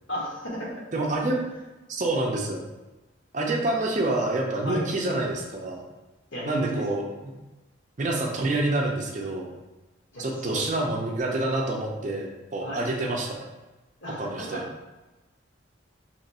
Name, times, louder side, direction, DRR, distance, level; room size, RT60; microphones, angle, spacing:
voice 1, 0.1-0.7 3.7-3.8 4.6-4.8 6.3-6.8 10.1-10.9 12.6-12.8 14.0-14.6, equal, 65° left, -5 dB, 1.1 m, -34 dB
voice 2, 0.9-1.4 1.9-2.6 3.3-5.8 6.5-7.3 8.0-9.5 10.2-13.4 14.2-14.6, right 2 dB, 35° right, 0 dB, 0.4 m, -27 dB
3.0 x 2.5 x 4.1 m, 1.1 s
head